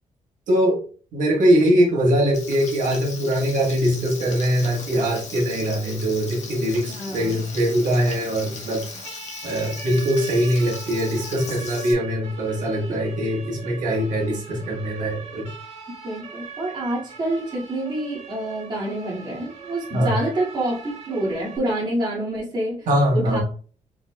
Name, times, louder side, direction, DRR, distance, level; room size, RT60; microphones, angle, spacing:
voice 1, 0.5-0.8 1.1-8.8 9.4-15.4 19.9-20.1 22.9-23.4, equal, 80° right, -2 dB, 1.4 m, -22 dB
Frying (food), 2.3-11.9, left 4 dB, 60° left, 1.4 m, -38 dB
Siren, 3.9-21.6, right 5 dB, 55° right, 1.9 m, -42 dB
voice 2, 6.9-7.4 16.0-22.9 23.1-23.4, right 1 dB, 35° right, -5 dB, 2.1 m, -27 dB
4.8 x 4.7 x 2.3 m, 0.41 s
wide cardioid pair, 155°, 13 cm